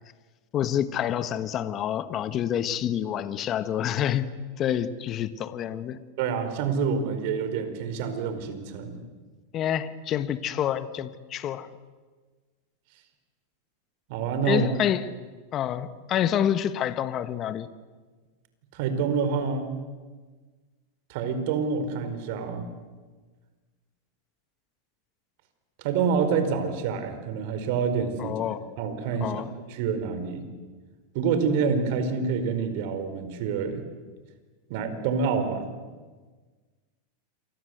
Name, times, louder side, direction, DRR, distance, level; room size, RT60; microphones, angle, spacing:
voice 1, 0.5-4.3 4.6-6.0 9.5-11.7 14.5-15.0 15.5-17.7 28.2-28.7 29.2-29.5, left 10 dB, 35° left, 1.4 m, -27 dB
voice 2, 6.2-9.0 14.1-14.7 18.7-19.7 21.1-22.6 25.8-28.4 28.8-29.4 29.7-30.4 31.1-33.8 34.7-35.7, right 5 dB, 60° right, 4.8 m, -27 dB
28.0 x 24.5 x 8.1 m
hypercardioid pair, 115°, 0 cm